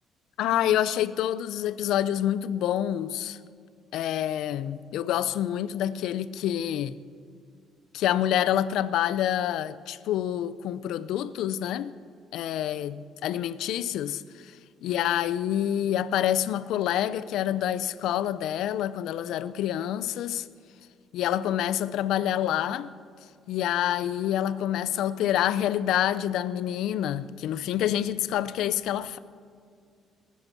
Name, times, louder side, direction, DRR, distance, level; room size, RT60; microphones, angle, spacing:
voice 1, 0.4-3.4 3.9-6.9 7.9-11.9 12.3-14.5 14.8-20.5 21.1-22.9 23.5-29.2, left 11 dB, 80° left, 0.6 m, -27 dB
19.5 x 9.4 x 6.1 m
cardioid pair, 115°, 0 cm